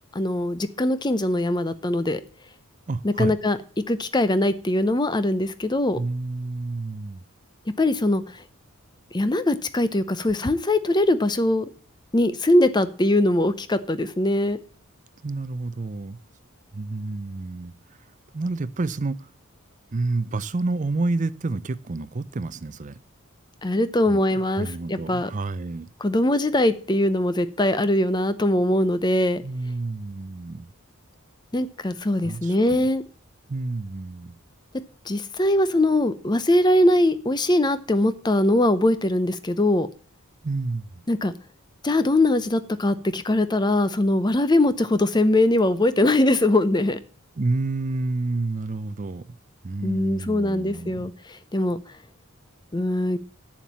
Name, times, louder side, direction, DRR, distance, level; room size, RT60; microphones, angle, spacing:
voice 1, 0.1-2.2 3.0-3.6 3.9-6.0 7.8-8.4 9.1-11.7 12.1-14.6 23.6-25.3 26.0-29.4 31.5-33.0 35.1-39.9 41.1-41.3 41.8-47.0 49.8-51.8 52.7-53.2, left 1 dB, 20° left, 0.6 m, -21 dB
voice 2, 2.9-3.4 5.9-7.2 15.2-16.2 16.7-17.7 18.3-19.3 19.9-23.0 24.1-25.9 29.4-30.7 32.2-32.9 33.5-34.3 40.4-41.0 47.4-49.3 49.6-51.1, right 3 dB, 35° right, 0.5 m, -29 dB
7.3 x 7.2 x 7.3 m
head